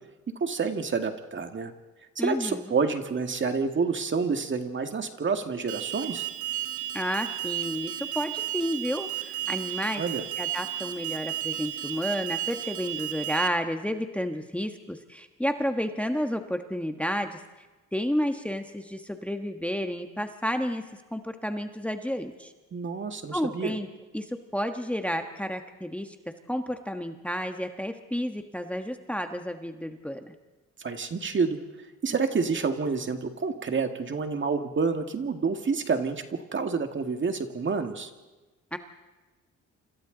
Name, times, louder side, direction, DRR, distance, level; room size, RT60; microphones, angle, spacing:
voice 1, 0.4-1.7 2.2-6.3 10.0-10.2 22.7-23.7 30.8-31.6 32.0-38.1, right 5 dB, 40° right, 6 dB, 2.0 m, -28 dB
voice 2, 2.2-2.7 6.9-10.0 10.4-17.4 17.9-20.8 21.1-22.5 23.3-23.9 24.1-26.1 26.5-30.3 38.7-38.8, equal, 5° left, 6 dB, 1.3 m, -31 dB
Alarm, 5.7-13.5, right 12 dB, 85° right, 1.2 m, -33 dB
28.0 x 26.5 x 4.0 m, 1.2 s
cardioid pair, 90°, 30 cm